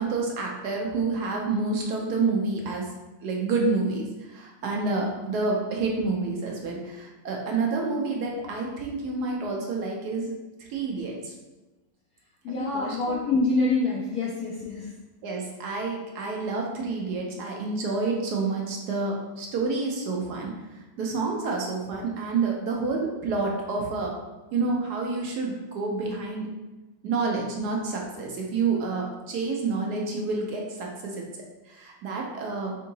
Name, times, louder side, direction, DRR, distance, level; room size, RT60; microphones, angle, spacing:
voice 1, 0.0-2.9 3.2-10.3 10.7-11.3 12.5-13.0 15.2-20.5 21.0-24.2 24.5-26.5 27.0-31.2 31.7-32.8, right 3 dB, 70° right, 0 dB, 1.1 m, -28 dB
voice 2, 12.4-14.9, left 3 dB, 65° left, -4 dB, 0.9 m, -26 dB
3.7 x 2.7 x 3.9 m, 1.1 s
omnidirectional pair, 2.0 m